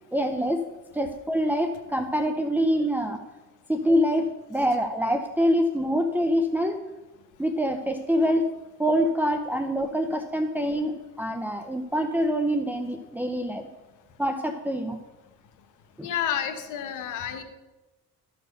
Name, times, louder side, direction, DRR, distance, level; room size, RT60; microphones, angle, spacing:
voice 1, 0.1-0.7 0.9-3.2 3.7-6.8 7.4-8.5 8.8-13.7 14.2-15.0 16.0-16.1, equal, 5° right, 4 dB, 0.7 m, -25 dB
voice 2, 16.0-17.4, left 9 dB, 90° left, 8 dB, 1.2 m, -30 dB
13.5 x 4.6 x 6.5 m, 1.1 s
cardioid pair, 90°, 30 cm